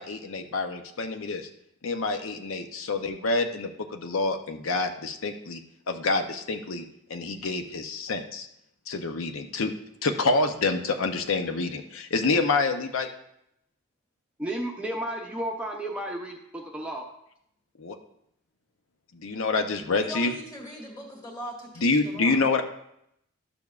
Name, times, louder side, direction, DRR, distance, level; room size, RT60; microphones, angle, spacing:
voice 1, 0.0-1.5 1.8-5.6 5.9-6.8 7.1-8.5 8.9-9.7 10.0-13.1 17.8-18.0 19.1-20.3 21.8-22.6, left 3 dB, 80° left, 6 dB, 0.7 m, -27 dB
voice 2, 14.4-17.1, right 1 dB, 5° right, 0 dB, 0.6 m, -33 dB
voice 3, 20.0-22.4, equal, 20° left, 0 dB, 1.8 m, -40 dB
12.0 x 7.0 x 2.4 m, 0.76 s
head